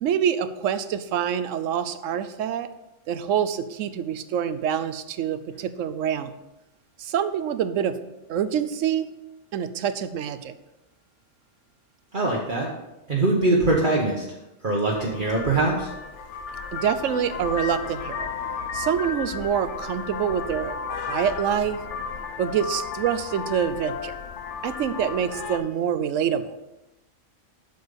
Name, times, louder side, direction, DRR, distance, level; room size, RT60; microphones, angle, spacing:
voice 1, 0.0-2.7 3.1-6.4 7.0-8.0 8.3-9.1 9.5-10.5 16.7-18.3 18.7-21.8 22.4-24.1 24.6-26.6, right 8 dB, 85° right, 12 dB, 1.0 m, -26 dB
voice 2, 12.1-12.7 13.1-14.2 14.6-15.9, right 2 dB, 45° right, -3 dB, 1.3 m, -22 dB
Vehicle horn car horn honking, 14.9-25.6, left 5 dB, 70° left, 1.0 m, -34 dB
8.0 x 6.8 x 5.2 m, 0.94 s
omnidirectional pair, 1.3 m